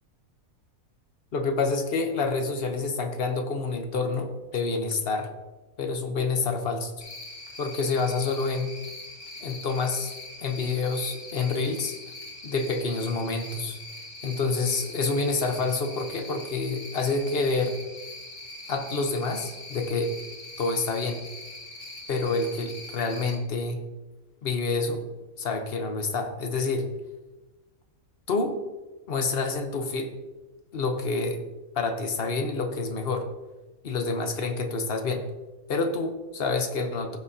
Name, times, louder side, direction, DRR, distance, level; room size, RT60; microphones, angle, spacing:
voice 1, 1.3-5.3 5.8-6.9 7.6-8.7 9.4-10.1 10.4-11.9 12.4-13.8 14.2-17.8 18.7-20.1 20.6-21.2 22.1-23.8 24.4-25.0 25.4-26.8 28.3-28.6 29.1-30.2 30.7-31.4 31.7-33.3 33.8-35.3 35.7-37.2, left 3 dB, 45° left, 6 dB, 1.0 m, -28 dB
Cricket, 7.0-23.4, left 2 dB, 80° left, 2.0 m, -42 dB
15.5 x 6.2 x 2.8 m, 1.2 s
omnidirectional pair, 1.5 m